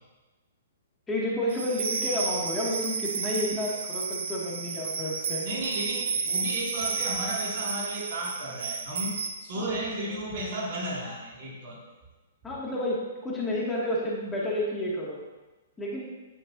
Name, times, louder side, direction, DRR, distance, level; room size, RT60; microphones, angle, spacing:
voice 1, 1.1-5.5 9.6-10.1 12.4-15.2 15.8-16.1, left 1 dB, 15° left, -5 dB, 2.4 m, -31 dB
sound 1, 1.5-9.3, right 5 dB, 65° right, 0.9 m, -32 dB
voice 2, 5.4-9.2 9.4-11.8, right 1 dB, 50° right, -3 dB, 2.6 m, -33 dB
9.8 x 9.0 x 2.8 m, 1.1 s
figure-of-eight pair, 120°, 0 cm